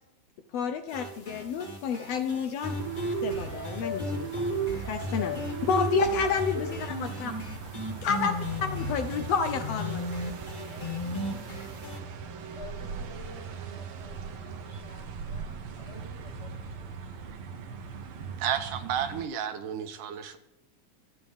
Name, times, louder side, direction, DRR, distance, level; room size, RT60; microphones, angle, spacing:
voice 1, 0.5-2.8 3.2-5.4 5.7-7.4 8.0-10.1, left 6 dB, 75° left, 8 dB, 1.5 m, -30 dB
sound 1, 0.9-12.0, right 1 dB, 30° left, 0.9 m, -34 dB
sound 2, 2.6-19.3, right 5 dB, 65° right, 1.3 m, -40 dB
voice 2, 10.5-11.4 12.5-16.5 16.8-17.2, left 2 dB, 15° left, 0 dB, 1.7 m, -50 dB
voice 3, 18.4-20.4, right 9 dB, 85° right, 7 dB, 2.6 m, -32 dB
25.0 x 9.5 x 3.6 m, 0.90 s
omnidirectional pair, 3.7 m